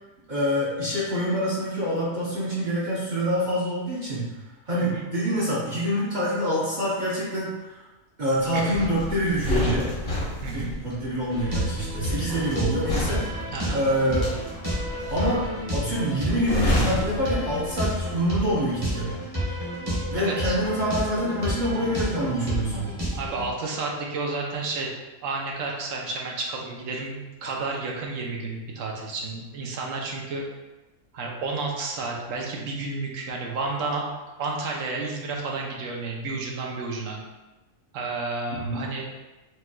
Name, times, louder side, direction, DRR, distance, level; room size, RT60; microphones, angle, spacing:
voice 1, 0.3-4.3 4.7-7.8 8.2-9.9 10.5-13.2 13.7-14.3 15.1-15.4 15.7-19.1 20.1-22.9 38.6-38.8, equal, 40° right, -7 dB, 0.8 m, -26 dB
sound 1, 8.7-18.1 18.4-18.6, left 1 dB, 50° left, 1.1 m, -29 dB
sound 2, 11.3-23.5, equal, 20° right, 1.1 m, -31 dB
voice 2, 13.5-13.8 20.1-20.6 23.2-24.9 25.2-30.4 31.1-34.1 34.4-37.2 37.9-39.0, right 3 dB, 80° right, -1 dB, 1.0 m, -31 dB
4.7 x 2.9 x 2.2 m, 1.1 s
omnidirectional pair, 1.3 m